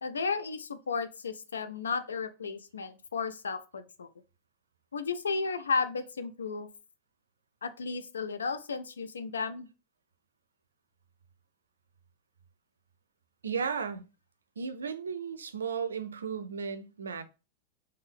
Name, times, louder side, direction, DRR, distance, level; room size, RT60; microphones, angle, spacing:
voice 1, 0.0-4.1 4.9-6.7 7.6-9.7, left 4 dB, 70° left, 0.4 m, -33 dB
voice 2, 13.4-14.0 14.6-17.2, right 6 dB, 70° right, 0.4 m, -34 dB
3.6 x 2.8 x 3.2 m
figure-of-eight pair, 90°, 0 cm